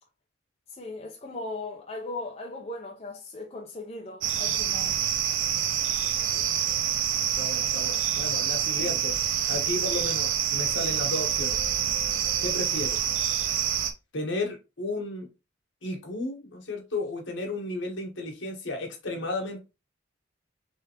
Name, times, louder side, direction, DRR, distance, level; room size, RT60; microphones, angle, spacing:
voice 1, 0.7-5.0 8.5-8.9, left 2 dB, 30° left, 0.6 m, -38 dB
sound 1, 4.2-13.9, right 9 dB, 85° right, 0.6 m, -27 dB
voice 2, 7.3-9.2 9.5-11.6 12.4-13.0 14.1-15.3 15.8-19.6, left 2 dB, 70° left, 1.3 m, -33 dB
3.6 x 3.3 x 2.9 m
head